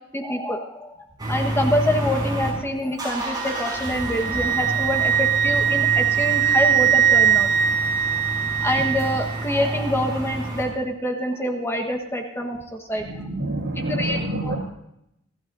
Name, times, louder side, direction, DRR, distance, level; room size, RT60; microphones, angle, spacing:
voice 1, 0.1-1.0 1.3-7.5 8.6-13.1 14.0-14.5, equal, 15° left, 2 dB, 1.3 m, -26 dB
sound 1, 1.2-2.5 2.9-10.6, right 1 dB, 20° right, 6.5 m, -29 dB
Wind instrument woodwind instrument, 3.4-9.3, right 9 dB, 55° right, 0.6 m, -21 dB
voice 2, 12.9-14.6, right 1 dB, 75° right, -1 dB, 6.7 m, -27 dB
27.0 x 15.0 x 2.7 m, 0.80 s
head